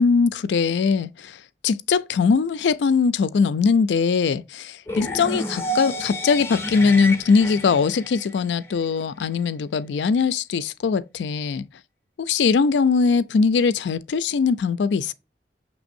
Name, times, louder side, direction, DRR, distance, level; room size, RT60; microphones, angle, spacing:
voice 1, 0.0-1.4 1.6-11.6 12.2-15.1, left 5 dB, 85° left, 0.4 m, -21 dB
sound 1, 4.9-8.8, equal, 15° left, 0.5 m, -30 dB
6.1 x 3.3 x 2.5 m
head